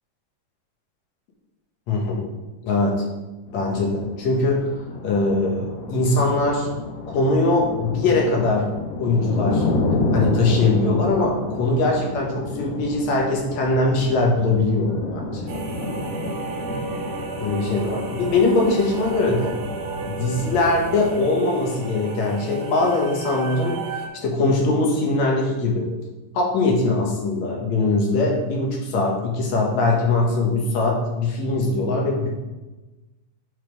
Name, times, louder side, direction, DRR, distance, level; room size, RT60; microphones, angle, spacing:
voice 1, 1.9-2.2 2.6-3.1 3.5-4.7 5.0-6.7 7.1-8.7 9.0-9.7 10.1-15.4 17.4-19.5 20.1-23.8 24.2-25.9 26.3-32.3, left 2 dB, 65° left, -1 dB, 2.4 m, -21 dB
sound 1, 3.5-21.2, left 2 dB, 85° left, 1.3 m, -30 dB
sound 2, 15.5-24.1, right 5 dB, 65° right, 1.7 m, -34 dB
5.7 x 5.2 x 4.7 m, 1.1 s
omnidirectional pair, 3.7 m